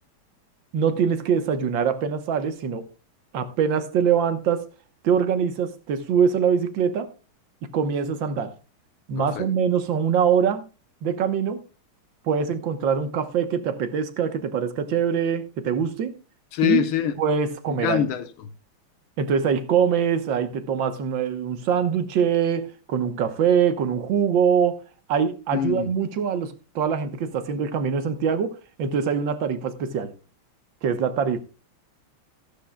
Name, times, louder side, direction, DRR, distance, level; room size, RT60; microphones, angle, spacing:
voice 1, 0.7-2.9 3.3-4.7 5.0-7.1 7.6-8.5 9.1-10.7 11.0-11.6 12.3-16.1 16.6-16.8 17.2-18.1 19.2-24.8 25.1-30.1 30.8-31.4, right 7 dB, 65° right, 1.8 m, -23 dB
voice 2, 9.2-9.5 16.5-17.1 17.7-18.3 25.5-25.9, left 10 dB, 80° left, 1.9 m, -24 dB
15.0 x 11.5 x 2.3 m
omnidirectional pair, 2.3 m